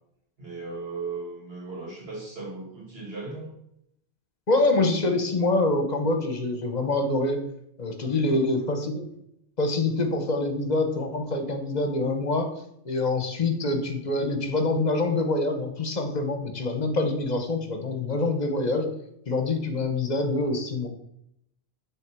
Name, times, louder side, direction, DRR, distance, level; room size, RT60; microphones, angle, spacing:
voice 1, 0.4-3.5 8.0-8.4, right 3 dB, 65° right, -2 dB, 2.4 m, -37 dB
voice 2, 4.5-7.4 7.8-9.1 9.6-12.5 12.8-18.9 19.3-20.9, left 2 dB, 45° left, 6 dB, 1.0 m, -25 dB
7.7 x 3.4 x 6.1 m, 0.76 s
omnidirectional pair, 1.1 m